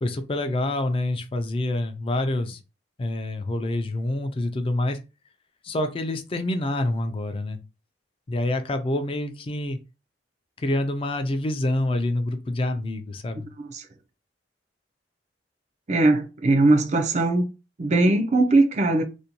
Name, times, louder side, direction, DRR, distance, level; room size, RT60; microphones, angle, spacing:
voice 1, 0.0-2.6 3.0-5.0 5.6-7.6 8.3-9.8 10.6-13.5, left 1 dB, 30° left, 0.4 m, -27 dB
voice 2, 15.9-17.5 17.8-19.0, right 2 dB, 40° right, 0.4 m, -20 dB
2.6 x 2.2 x 2.8 m
head